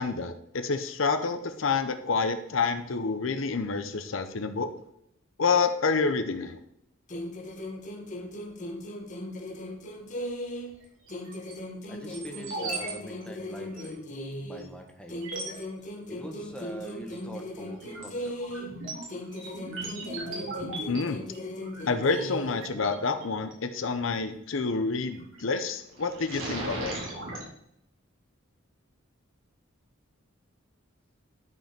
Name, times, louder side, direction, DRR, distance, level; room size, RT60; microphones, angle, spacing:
voice 1, 0.0-4.7 5.4-6.6 20.9-21.2 21.9-26.9, left 4 dB, 70° left, 9 dB, 0.7 m, -28 dB
sound 1, 7.1-10.8 11.1-14.7 15.1-18.8 19.1-22.7, left 1 dB, 40° left, 1.3 m, -38 dB
sound 2, 11.1-11.5 12.1-12.9 13.2-13.3 13.7-13.9 14.6-14.7 15.1-15.6 16.8-17.2 17.6-23.5 25.1-25.5 25.9-27.4, right 2 dB, 75° right, 3.8 m, -38 dB
voice 2, 11.9-14.0 14.4-15.2 16.1-18.3, right 1 dB, 5° left, 2 dB, 1.4 m, -43 dB
12.5 x 5.3 x 5.2 m, 0.75 s
head